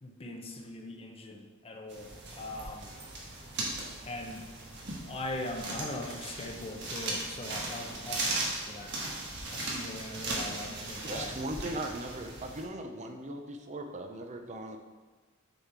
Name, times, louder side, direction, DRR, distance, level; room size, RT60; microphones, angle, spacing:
voice 1, 0.0-2.9 4.0-4.4 5.1-8.3 8.7-9.0 9.5-11.3, left 1 dB, 30° left, 2 dB, 0.7 m, -40 dB
sound 1, 1.9-12.6, right 2 dB, 55° right, 1.4 m, -38 dB
voice 2, 11.0-14.8, right 1 dB, 35° right, 5 dB, 0.6 m, -38 dB
6.7 x 4.2 x 4.7 m, 1.3 s
head